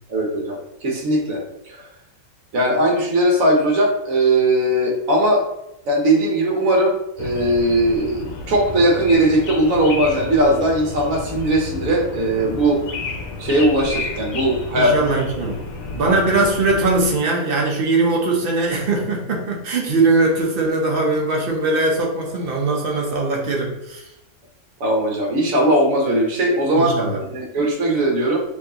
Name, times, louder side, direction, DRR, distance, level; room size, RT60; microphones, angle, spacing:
voice 1, 0.1-1.4 1.7-1.8 2.5-5.4 5.9-12.8 13.4-15.1 16.0-16.1 24.8-28.4, right 1 dB, 65° right, 0 dB, 1.3 m, -19 dB
sound 1, 7.2-17.1, left 3 dB, 75° left, 1.1 m, -31 dB
voice 2, 14.7-15.6 15.9-24.1 26.8-27.2, right 3 dB, 45° right, -1 dB, 0.8 m, -20 dB
4.4 x 2.7 x 2.8 m, 0.85 s
omnidirectional pair, 1.5 m